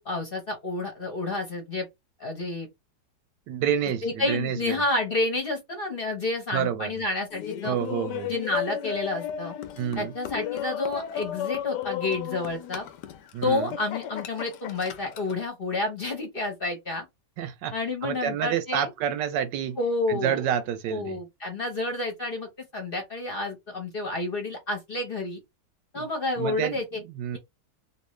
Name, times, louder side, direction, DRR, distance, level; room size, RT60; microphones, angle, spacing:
voice 1, 0.0-1.9 2.2-2.7 4.0-7.8 8.3-9.5 10.0-12.9 13.4-17.1 17.7-18.9 19.8-20.4 20.9-25.4 25.9-27.0, left 2 dB, 40° left, 1.0 m, -30 dB
voice 2, 3.5-4.8 6.5-6.9 7.6-8.3 9.8-10.1 13.3-13.7 17.4-17.7 18.0-19.8 20.1-21.2 26.0-26.1 26.4-26.8 27.1-27.4, right 9 dB, 80° right, 1.3 m, -28 dB
Laughter, 7.3-15.4, left 10 dB, 75° left, 1.2 m, -34 dB
3.1 x 2.7 x 3.1 m
omnidirectional pair, 1.9 m